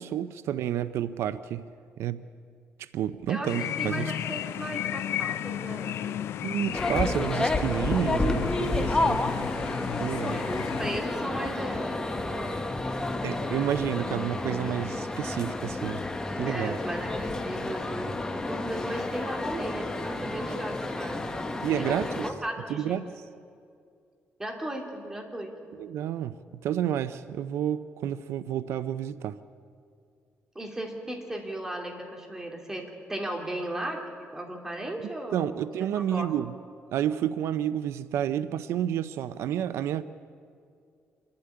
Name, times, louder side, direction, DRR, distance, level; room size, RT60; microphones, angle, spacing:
voice 1, 0.0-1.6 2.0-2.2 2.8-4.1 6.4-9.2 10.0-10.4 13.2-16.0 16.4-16.8 21.6-22.3 22.7-23.1 25.7-26.3 26.6-29.4 35.0-36.5 36.9-40.0, right 10 dB, 85° right, 13 dB, 0.6 m, -30 dB
sound 1, 3.4-11.0, left 11 dB, 75° left, 0.5 m, -34 dB
voice 2, 3.8-6.3 8.8-9.2 10.3-13.7 16.4-18.2 18.5-21.4 21.7-23.0 24.4-25.5 30.5-35.6 36.1-36.3, right 1 dB, 10° right, 1 dB, 2.8 m, -36 dB
sound 2, 6.7-22.3, left 2 dB, 15° left, 1.2 m, -30 dB
26.5 x 11.5 x 9.9 m, 2.3 s
cardioid pair, 145°, 4 cm